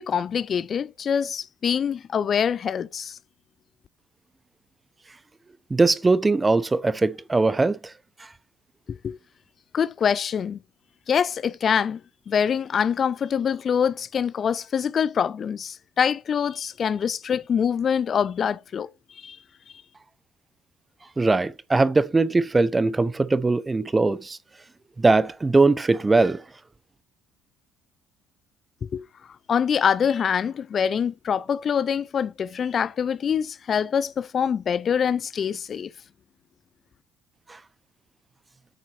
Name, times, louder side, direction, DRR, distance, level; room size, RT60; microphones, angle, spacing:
voice 1, 0.0-3.2 8.9-9.2 9.7-10.6 11.1-12.0 12.3-19.4 28.8-29.1 29.5-35.9, left 7 dB, 45° left, 0.4 m, -25 dB
voice 2, 5.7-7.8 21.2-24.4 25.0-26.4, right 3 dB, 20° right, 0.7 m, -20 dB
9.2 x 4.1 x 5.9 m
cardioid pair, 100°, 0 cm